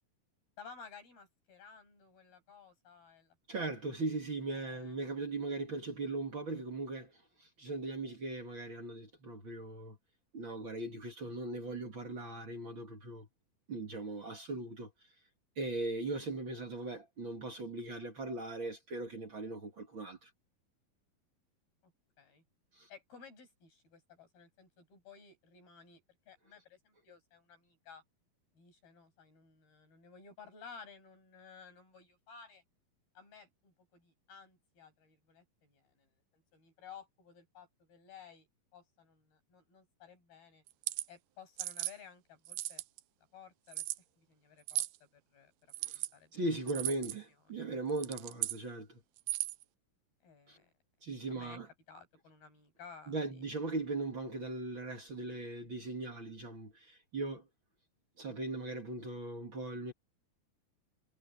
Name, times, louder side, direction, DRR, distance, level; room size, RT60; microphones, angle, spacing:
voice 1, 0.6-3.4 4.5-5.0 21.8-21.9 22.2-22.4 22.9-28.0 28.5-32.6 33.2-38.5 38.7-40.6 41.1-42.8 43.3-43.9 44.2-46.3 47.6-47.7 50.2-50.7 51.3-51.6 51.9-53.4, left 6 dB, 85° left, 9.3 m, -56 dB
voice 2, 3.5-10.0 10.3-13.3 13.7-14.9 15.6-20.3 22.7-22.9 45.8-46.0 46.3-49.0 50.5-50.6 51.0-51.7 53.1-57.4 58.2-59.9, right 2 dB, 35° right, 2.5 m, -39 dB
sound 1, 40.7-41.1 41.6-41.9 42.5-43.0 43.7-44.0 44.7-45.0 45.7-46.1 46.7-47.2 47.9-48.6 49.2-49.6, right 16 dB, 85° right, 2.6 m, -36 dB
omnidirectional pair, 4.2 m